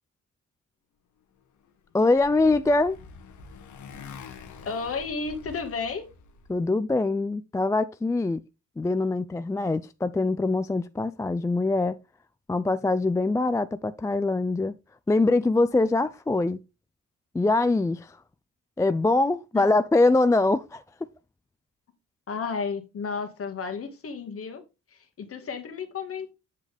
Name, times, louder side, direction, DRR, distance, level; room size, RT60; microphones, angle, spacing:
Motorcycle, 1.6-6.6, left 5 dB, 70° left, 1.4 m, -46 dB
voice 1, 1.9-3.0 6.5-8.4 8.8-12.0 12.5-14.7 15.1-16.6 17.3-18.2 18.8-20.8, left 2 dB, 10° left, 0.4 m, -23 dB
voice 2, 4.6-6.1 22.3-24.6 24.9-26.3, left 5 dB, 50° left, 1.8 m, -32 dB
7.4 x 6.4 x 3.4 m
cardioid pair, 90°, 30 cm